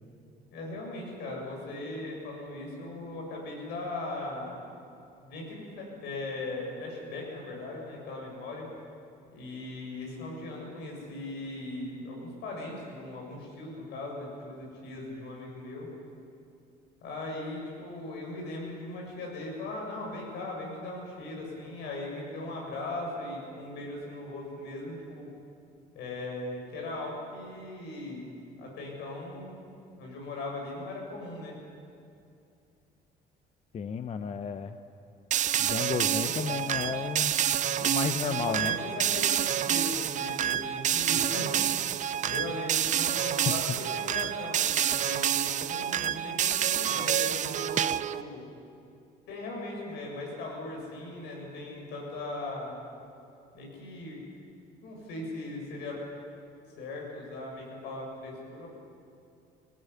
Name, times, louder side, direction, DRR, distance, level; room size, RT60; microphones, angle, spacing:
voice 1, 0.5-4.7 5.2-8.7 9.3-15.9 17.0-25.3 25.9-28.3 28.6-29.5 29.9-31.6 36.2-36.3 38.2-41.9 42.2-48.4 49.3-52.8 53.5-54.2 54.8-56.0 56.8-58.7, left 2 dB, 85° left, -1 dB, 7.6 m, -39 dB
voice 2, 33.7-34.8 35.6-37.3 37.8-38.7 43.4-43.5, left 6 dB, 40° left, 9 dB, 0.9 m, -32 dB
sound 1, 35.3-48.2, right 10 dB, 45° right, 0.6 m, -28 dB
19.0 x 18.0 x 9.8 m, 2.6 s
cardioid pair, 110°, 17 cm